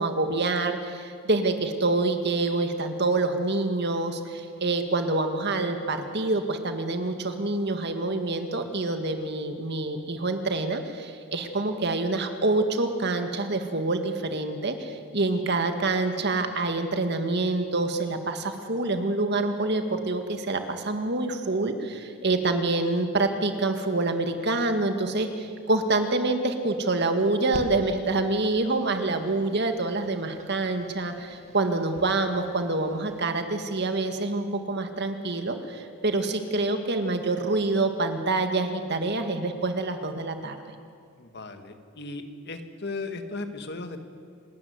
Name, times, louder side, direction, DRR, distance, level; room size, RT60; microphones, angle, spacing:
voice 1, 0.0-40.6, right 2 dB, 55° right, 6 dB, 2.0 m, -26 dB
sound 1, 27.5-33.2, right 1 dB, 35° right, 1.9 m, -46 dB
voice 2, 41.2-44.0, left 3 dB, 55° left, 7 dB, 1.8 m, -36 dB
28.0 x 13.5 x 9.7 m, 2.2 s
head